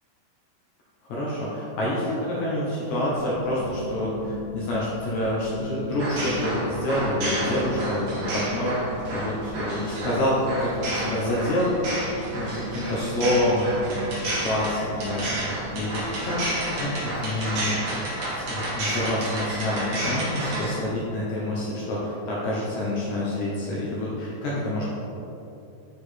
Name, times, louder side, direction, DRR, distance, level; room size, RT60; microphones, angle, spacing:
voice 1, 1.0-11.9 12.3-16.4 16.8-17.7 18.3-24.8, left 1 dB, 85° left, -6 dB, 1.6 m, -27 dB
sound 1, 3.1-16.9, equal, 75° right, 2.5 m, -38 dB
sound 2, 6.0-20.7, right 1 dB, 55° right, 1.7 m, -31 dB
7.2 x 4.7 x 4.3 m, 2.8 s
omnidirectional pair, 4.8 m